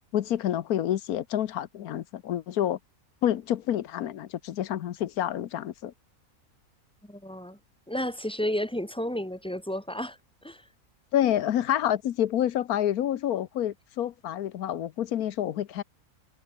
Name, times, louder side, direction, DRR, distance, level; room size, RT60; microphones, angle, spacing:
voice 1, 0.1-2.8 3.2-5.9 11.1-15.8, left 11 dB, 85° left, 1.3 m, -28 dB
voice 2, 7.1-7.6 7.9-10.2 10.4-10.6, left 1 dB, 5° left, 3.1 m, -32 dB
omnidirectional pair, 1.5 m